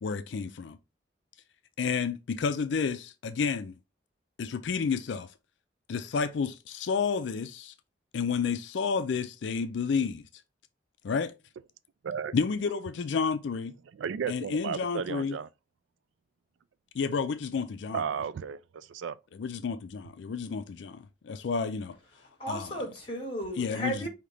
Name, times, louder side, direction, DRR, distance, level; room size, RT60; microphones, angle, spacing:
voice 1, 0.0-0.8 1.8-3.7 4.4-5.3 5.9-7.7 8.1-10.2 11.0-11.3 12.3-13.7 14.3-15.4 16.9-18.0 19.3-22.0 22.5-22.7 23.6-24.1, left 5 dB, 70° left, 0.4 m, -30 dB
voice 2, 12.0-12.3 13.9-15.5 17.9-19.2, right 7 dB, 85° right, 0.4 m, -34 dB
voice 3, 22.1-24.1, right 1 dB, 30° left, 1.6 m, -35 dB
5.0 x 2.8 x 3.2 m
head